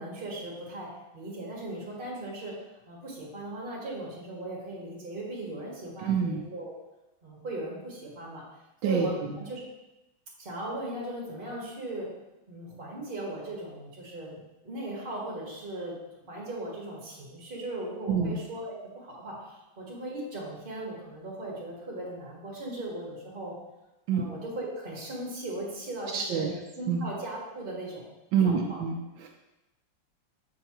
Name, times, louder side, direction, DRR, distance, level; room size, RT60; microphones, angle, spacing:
voice 1, 0.0-6.7 7.2-8.4 8.8-9.6 10.4-12.1 12.5-14.4 14.6-16.0 16.3-23.6 24.1-28.1 28.4-28.8, right 1 dB, 30° right, -4 dB, 1.7 m, -38 dB
voice 2, 6.0-6.4 8.8-9.4 18.1-18.4 24.1-24.3 26.1-26.5 26.9-27.0 28.3-29.3, right 6 dB, 75° right, 0 dB, 1.3 m, -27 dB
6.7 x 5.5 x 2.9 m, 0.97 s
omnidirectional pair, 2.1 m